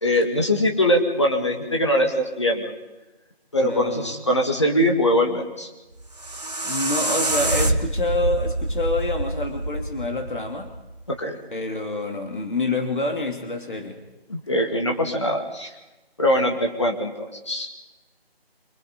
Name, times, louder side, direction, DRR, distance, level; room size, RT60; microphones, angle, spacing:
voice 1, 0.0-2.7 3.5-5.7 11.1-11.4 14.3-15.7 16.2-17.8, left 1 dB, 30° left, 2 dB, 2.3 m, -22 dB
voice 2, 3.6-4.1 6.3-10.7 11.5-14.0, left 2 dB, 55° left, 3 dB, 2.9 m, -27 dB
sound 1, 5.9-11.0, right 2 dB, 40° right, 1.2 m, -26 dB
26.5 x 23.5 x 5.3 m, 1.1 s
figure-of-eight pair, 175°, 31 cm